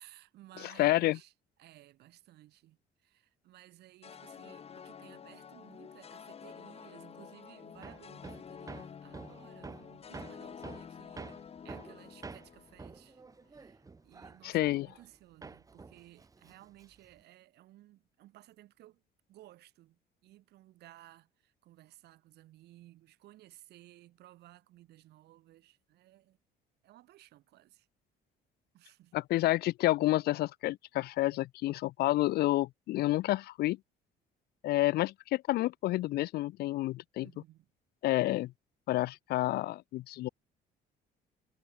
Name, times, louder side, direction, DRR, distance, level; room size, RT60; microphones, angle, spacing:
voice 1, 0.0-1.3 1.6-19.0 19.3-26.4 26.8-27.9 28.7-29.1 37.2-37.7, right 15 dB, 75° right, 6.0 m, -58 dB
voice 2, 0.8-1.2 14.4-14.9 29.1-33.8 34.6-37.3 38.0-38.5 38.9-40.3, left 16 dB, 70° left, 0.6 m, -29 dB
sound 1, 4.0-13.3, left 7 dB, 35° left, 1.4 m, -50 dB
Hammer, 7.8-15.2 15.4-17.2, right 4 dB, 20° right, 1.4 m, -48 dB
cardioid pair, 110°, 17 cm